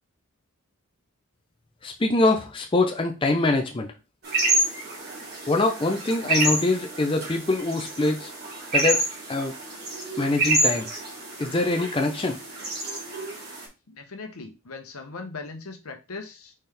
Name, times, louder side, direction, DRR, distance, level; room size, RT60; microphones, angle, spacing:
voice 1, 1.8-3.9 5.5-8.3 8.7-9.0 9.3-9.5 10.2-10.9 11.4-12.4, left 2 dB, 25° left, 4 dB, 0.5 m, -24 dB
sound 1, 4.2-13.6, right 2 dB, 45° right, 2.0 m, -28 dB
voice 2, 13.9-16.5, left 4 dB, 75° left, 6 dB, 0.9 m, -39 dB
4.3 x 3.7 x 3.4 m, 0.28 s
head